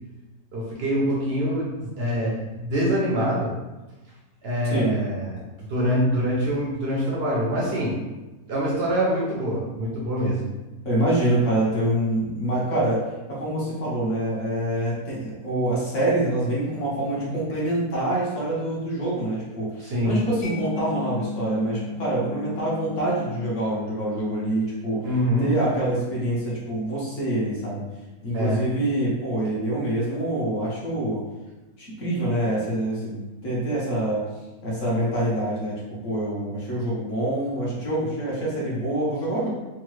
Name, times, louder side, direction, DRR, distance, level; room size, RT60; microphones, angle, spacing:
voice 1, 0.5-3.5 4.4-5.4 5.7-8.0 8.5-10.5 19.8-20.2 25.0-25.5 28.3-28.6, equal, 70° right, -5 dB, 0.6 m, -25 dB
voice 2, 10.8-13.0 13.3-25.1 25.4-27.8 28.2-31.2 31.8-34.2 34.6-39.5, right 1 dB, 55° left, -6 dB, 1.1 m, -26 dB
Mallet percussion, 20.4-27.8, left 3 dB, 80° left, 0.3 m, -38 dB
3.6 x 2.0 x 3.0 m, 1.1 s
omnidirectional pair, 1.8 m